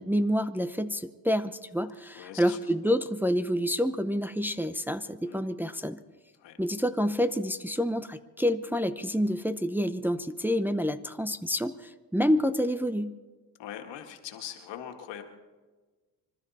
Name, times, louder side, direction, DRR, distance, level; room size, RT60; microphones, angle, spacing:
voice 1, 0.0-6.0 6.6-13.2, equal, 5° right, 9 dB, 0.7 m, -28 dB
voice 2, 2.2-2.6 5.2-5.4 6.4-6.6 13.6-15.2, left 10 dB, 80° left, 5 dB, 2.0 m, -41 dB
25.5 x 12.5 x 4.2 m, 1.3 s
cardioid pair, 85°, 43 cm